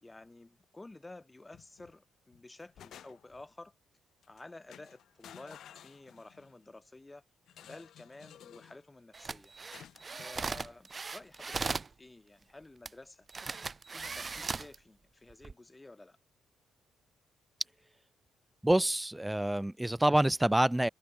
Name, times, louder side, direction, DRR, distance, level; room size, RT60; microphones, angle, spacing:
voice 1, 0.0-3.7 4.3-7.2 7.6-9.5 10.2-13.3 13.9-16.2, left 2 dB, 15° left, 1.3 m, -52 dB
sound 1, 1.5-1.9 2.3-3.5 4.2-4.4 4.7-6.5 7.5-8.8 9.7-10.7, left 10 dB, 70° left, 0.5 m, -54 dB
sound 2, 9.1-11.9 12.9-13.0 13.3-14.8 15.3-15.5, right 4 dB, 30° right, 0.8 m, -38 dB
voice 2, 18.6-20.9, right 1 dB, 10° right, 0.5 m, -27 dB
cardioid pair, 90°, 0 cm